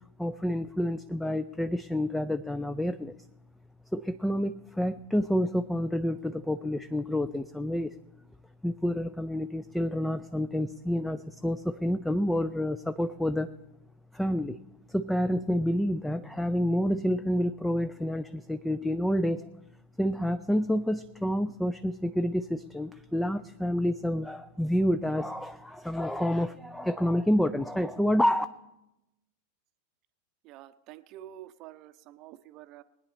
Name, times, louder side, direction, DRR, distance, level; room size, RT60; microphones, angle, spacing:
voice 1, 0.2-3.2 3.9-8.0 8.6-13.5 14.1-14.6 14.9-19.5 20.0-28.5, equal, 5° left, 11 dB, 0.4 m, -28 dB
voice 2, 30.4-32.8, right 13 dB, 40° right, 12 dB, 0.6 m, -48 dB
20.5 x 9.6 x 4.1 m, 0.92 s
figure-of-eight pair, 90°, 0 cm